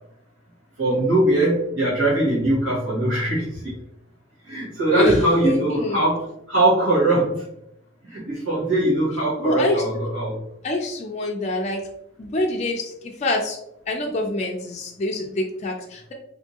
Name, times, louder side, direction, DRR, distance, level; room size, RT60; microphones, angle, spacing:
voice 1, 0.8-3.7 4.5-6.2 6.5-7.4 8.0-10.4, right 1 dB, 70° right, -8 dB, 1.5 m, -21 dB
voice 2, 4.9-6.0 9.4-9.8 10.6-11.8 12.2-13.6 13.9-16.1, left 1 dB, 30° left, 0 dB, 0.3 m, -25 dB
3.5 x 2.6 x 2.8 m, 0.78 s
head